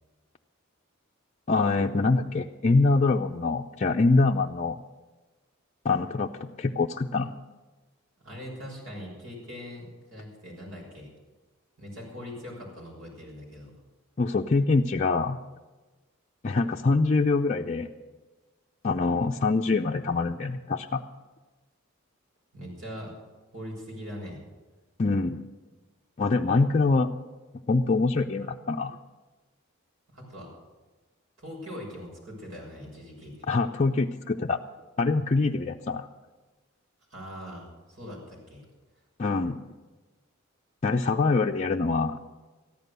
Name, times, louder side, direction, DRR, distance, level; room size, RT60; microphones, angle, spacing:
voice 1, 1.5-4.8 5.8-7.3 14.2-15.4 16.4-17.9 18.8-21.0 25.0-25.4 26.2-27.1 27.7-29.0 33.5-34.6 35.0-36.1 39.2-39.6 40.8-42.2, left 3 dB, 35° left, 1 dB, 0.5 m, -24 dB
voice 2, 8.2-11.1 11.8-13.7 22.5-23.1 23.5-24.4 30.1-30.5 31.4-33.4 37.1-38.7, equal, 80° right, -2 dB, 6.3 m, -41 dB
14.0 x 11.0 x 6.7 m, 1.2 s
head